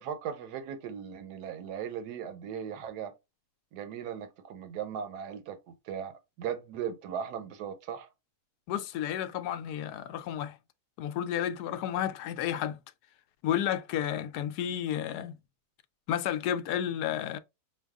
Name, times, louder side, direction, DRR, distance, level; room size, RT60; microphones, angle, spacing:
voice 1, 0.0-3.1 3.7-6.1 6.4-8.1, right 8 dB, 85° right, 1.3 m, -38 dB
voice 2, 8.7-10.6 11.0-12.8 13.4-15.4 16.1-17.4, left 10 dB, 80° left, 1.1 m, -31 dB
6.3 x 2.3 x 3.5 m
omnidirectional pair, 1.7 m